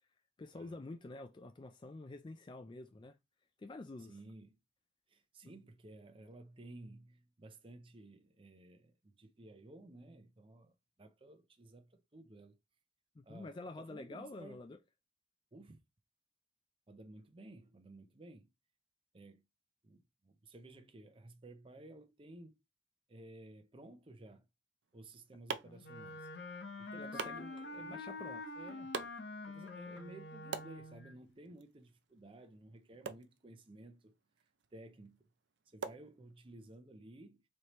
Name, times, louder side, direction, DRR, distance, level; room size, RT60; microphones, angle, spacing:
voice 1, 0.4-3.2 3.6-4.1 5.4-5.5 13.2-14.8 25.6-25.8 27.0-27.5 27.8-28.4, left 2 dB, 25° left, 0.4 m, -48 dB
voice 2, 4.1-4.6 5.1-10.7 11.0-12.6 13.2-14.6 15.5-15.8 16.9-18.5 19.1-19.4 19.8-22.6 23.1-24.5 24.9-26.3 26.8-28.1 28.6-28.9 29.5-34.1 34.7-35.3 35.7-37.4, right 2 dB, 30° right, 0.6 m, -55 dB
sound 1, 24.8-36.8, right 5 dB, 80° right, 0.5 m, -49 dB
Wind instrument woodwind instrument, 25.8-31.2, left 2 dB, 80° left, 0.9 m, -46 dB
4.2 x 3.3 x 3.0 m
head